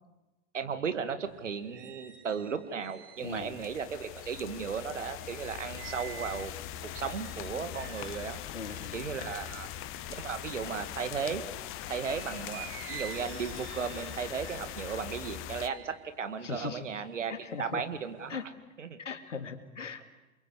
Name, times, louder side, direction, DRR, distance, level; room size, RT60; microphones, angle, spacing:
voice 1, 0.5-6.5 6.8-8.4 8.9-9.7 10.1-11.4 11.8-17.3 17.6-18.4 18.8-19.0, right 6 dB, 75° right, 10 dB, 2.0 m, -35 dB
sound 1, 1.2-11.4 11.9-17.4 17.8-18.4, right 10 dB, 50° right, 3.1 m, -50 dB
voice 2, 3.2-3.5 8.5-9.0 16.4-16.8 17.3-17.8 18.3-18.5 19.0-20.0, left 5 dB, 75° left, 9 dB, 2.3 m, -39 dB
sound 2, 3.2-15.7, left 12 dB, 35° left, 1.2 m, -41 dB
28.5 x 22.5 x 8.2 m, 1.1 s
figure-of-eight pair, 90°, 37 cm